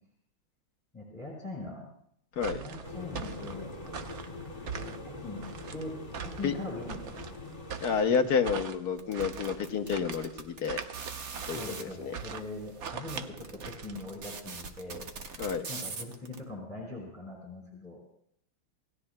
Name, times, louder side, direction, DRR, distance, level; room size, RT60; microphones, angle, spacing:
voice 1, 0.9-1.9 2.5-3.7 4.6-7.9 11.5-18.0, left 2 dB, 5° left, -4 dB, 4.1 m, -42 dB
sound 1, 2.4-14.3, right 7 dB, 70° right, 0.6 m, -42 dB
sound 2, 2.8-8.0, left 2 dB, 25° left, 2.5 m, -43 dB
voice 2, 7.8-10.8 11.5-12.1 15.4-15.6, left 6 dB, 60° left, 6 dB, 1.2 m, -29 dB
sound 3, 9.0-11.8 12.5-12.6 12.9-16.4, right 5 dB, 50° right, 1.4 m, -41 dB
27.5 x 17.5 x 2.2 m, 0.74 s
omnidirectional pair, 2.3 m